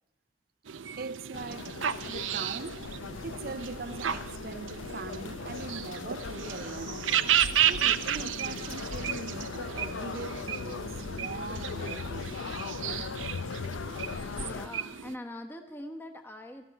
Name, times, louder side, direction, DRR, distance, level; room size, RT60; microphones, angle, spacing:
sound 1, 0.7-15.1, right 10 dB, 90° right, 0.7 m, -33 dB
voice 1, 1.0-2.9 3.2-7.1 7.7-12.4, right 4 dB, 50° right, 0.5 m, -41 dB
sound 2, 1.3-14.7, left 5 dB, 90° left, 0.5 m, -39 dB
sound 3, 2.8-8.8, equal, 25° right, 1.0 m, -55 dB
voice 2, 14.4-16.6, left 1 dB, 10° left, 1.0 m, -42 dB
18.5 x 13.5 x 5.8 m
head